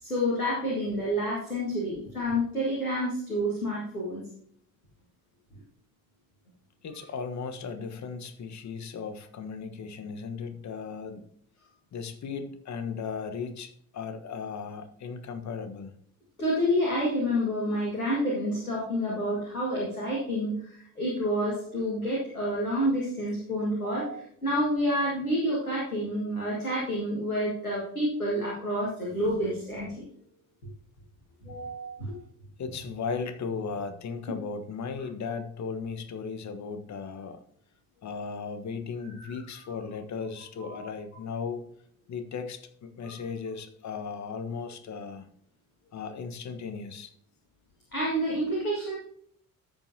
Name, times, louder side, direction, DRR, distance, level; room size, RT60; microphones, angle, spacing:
voice 1, 0.0-4.2 16.4-29.9 31.4-32.1 40.6-40.8 47.9-49.0, equal, 85° left, 2.0 m, -29 dB
voice 2, 6.8-11.3 11.9-15.9 32.6-37.4 38.0-41.6 42.1-45.3 45.9-47.1, left 5 dB, 40° left, 1.3 m, -36 dB
13.0 x 7.2 x 2.8 m
figure-of-eight pair, 45°, 42 cm